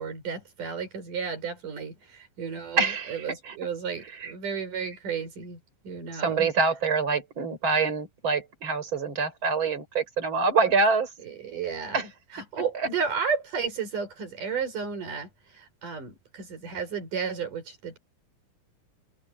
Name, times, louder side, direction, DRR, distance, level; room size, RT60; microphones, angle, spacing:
voice 1, 0.0-6.5 11.2-12.0 12.3-18.0, right 6 dB, 90° right, 7.0 m, -33 dB
voice 2, 2.8-3.5 4.2-4.3 6.2-11.1 11.9-12.1, right 4 dB, 40° right, 5.7 m, -25 dB
omnidirectional pair, 3.6 m